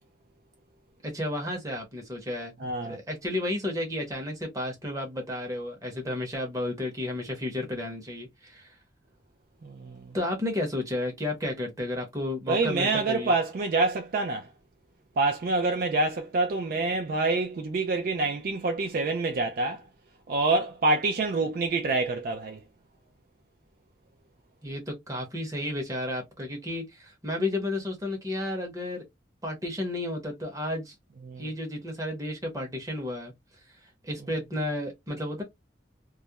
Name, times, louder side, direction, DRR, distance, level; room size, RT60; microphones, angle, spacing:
voice 1, 1.0-8.7 10.1-13.3 24.6-29.0 29.4-30.9 31.4-33.3 34.0-35.4, left 1 dB, 15° right, 0.8 m, -32 dB
voice 2, 2.6-3.0 9.6-10.2 12.5-14.5 15.2-19.8 20.3-22.6 31.3-31.5, right 3 dB, 50° right, 0.3 m, -26 dB
2.3 x 2.1 x 2.8 m
head